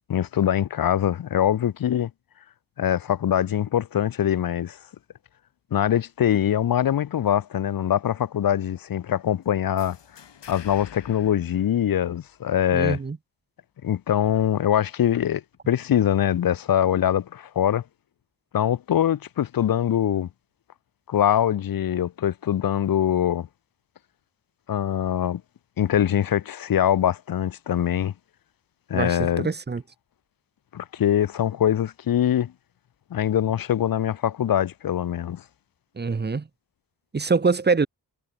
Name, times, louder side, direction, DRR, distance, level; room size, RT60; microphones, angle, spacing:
voice 1, 0.1-2.1 2.8-4.8 5.7-10.0 10.5-13.0 13.8-17.8 18.5-20.3 21.1-23.5 24.7-25.4 25.8-28.1 28.9-29.5 30.7-32.5 33.1-35.4, left 10 dB, 55° left, 0.6 m, -23 dB
sound 1, 9.8-12.5, left 8 dB, 85° left, 6.0 m, -47 dB
voice 2, 12.7-13.2 28.9-29.8 36.0-36.4 37.1-37.9, right 4 dB, 25° right, 0.8 m, -24 dB
cardioid pair, 65°, 41 cm